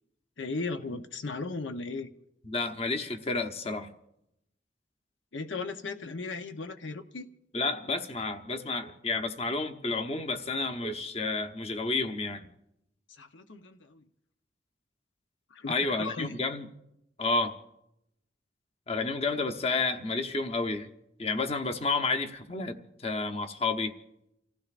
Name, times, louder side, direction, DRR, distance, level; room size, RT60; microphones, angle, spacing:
voice 1, 0.4-2.1 5.3-7.3 13.2-14.0 15.5-16.3, left 3 dB, 80° left, 8 dB, 0.8 m, -36 dB
voice 2, 2.4-3.9 7.5-12.5 15.7-16.7 17.2-17.5 18.9-20.9 21.2-23.9, left 3 dB, 35° left, 7 dB, 0.8 m, -30 dB
30.0 x 15.5 x 2.5 m, 0.83 s
head